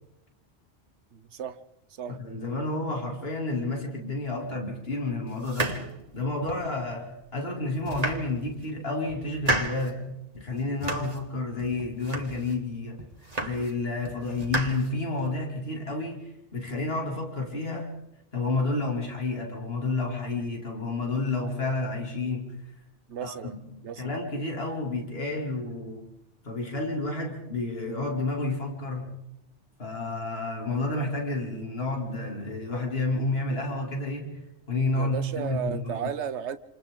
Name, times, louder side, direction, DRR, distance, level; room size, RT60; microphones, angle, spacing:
voice 1, 1.1-1.6 2.0-2.2 23.1-23.6 23.8-24.1 35.0-36.6, right 8 dB, 70° right, 1.2 m, -34 dB
voice 2, 2.1-5.9 6.1-13.1 13.4-17.9 18.3-22.7 23.2-26.1 26.4-29.2 29.8-34.4 34.7-36.1, left 2 dB, 55° left, 3.4 m, -30 dB
sound 1, 5.4-6.7 7.2-7.3 7.7-8.7 9.1-9.9 10.3-11.3 11.6-12.6 13.0-13.8 14.0-15.4, right 2 dB, 35° right, 1.8 m, -33 dB
28.0 x 27.5 x 3.9 m
omnidirectional pair, 1.2 m